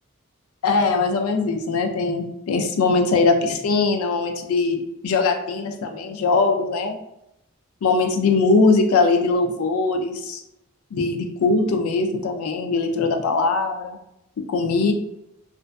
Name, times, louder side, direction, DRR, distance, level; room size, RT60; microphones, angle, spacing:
voice 1, 0.6-7.0 7.8-10.4 10.9-14.0 14.5-14.9, left 3 dB, 80° left, 5 dB, 0.4 m, -21 dB
2.5 x 2.2 x 2.3 m, 0.85 s
head